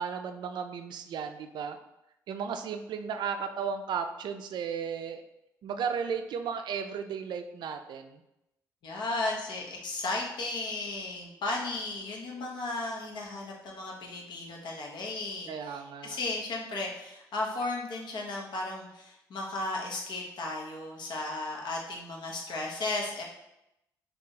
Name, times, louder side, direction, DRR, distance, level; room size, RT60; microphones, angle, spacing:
voice 1, 0.0-1.8 2.3-5.2 5.6-8.2 15.5-16.2, right 6 dB, 60° right, 7 dB, 0.3 m, -34 dB
voice 2, 8.8-23.2, left 2 dB, 65° left, -1 dB, 0.8 m, -35 dB
2.6 x 2.4 x 3.8 m, 0.87 s
supercardioid pair, 60°, 8 cm